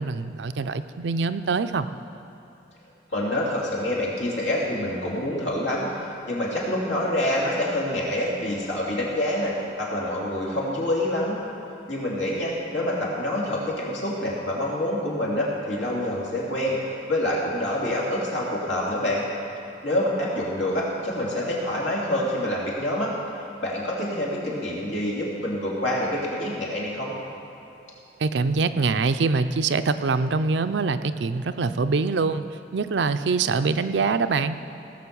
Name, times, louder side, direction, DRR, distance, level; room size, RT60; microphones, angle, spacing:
voice 1, 0.0-1.9 28.2-32.4 32.7-34.6, right 4 dB, 70° right, 11 dB, 0.5 m, -24 dB
voice 2, 3.1-11.4 11.9-16.8 17.1-19.2 19.8-23.1 23.6-27.1, left 1 dB, 90° left, -5 dB, 3.2 m, -26 dB
18.5 x 6.3 x 6.9 m, 2.9 s
head